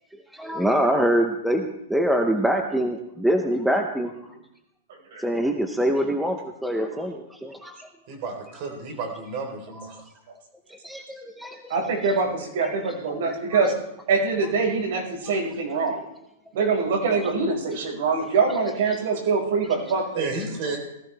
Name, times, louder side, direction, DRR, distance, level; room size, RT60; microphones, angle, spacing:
voice 1, 0.3-4.1 5.2-7.9 9.7-9.9 10.7-11.8 12.6-13.2 18.9-19.0, equal, ahead, 4 dB, 0.8 m, -25 dB
voice 2, 8.1-10.0 20.1-20.8, right 3 dB, 35° right, 3 dB, 3.9 m, -32 dB
voice 3, 11.7-13.7 14.1-16.0 16.5-20.3, right 4 dB, 60° right, 0 dB, 5.3 m, -24 dB
19.0 x 14.5 x 3.4 m, 0.82 s
supercardioid pair, 165°, 0 cm